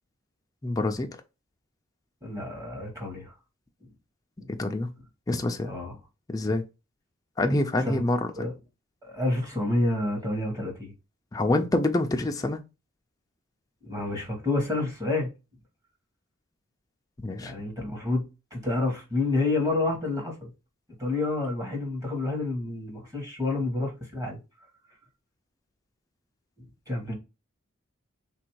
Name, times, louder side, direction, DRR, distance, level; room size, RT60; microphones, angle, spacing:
voice 1, 0.6-1.2 4.5-4.9 5.3-5.7 6.3-6.6 7.4-8.5 11.3-12.6 17.2-17.5, left 2 dB, 15° left, 0.4 m, -26 dB
voice 2, 2.2-3.3 4.4-4.5 5.6-5.9 7.8-8.0 8.4-8.5 9.0-10.9 13.8-15.3 17.4-18.2 18.5-20.5 21.0-24.4 26.9-27.2, left 2 dB, 15° right, 1.1 m, -29 dB
3.5 x 2.5 x 4.5 m
head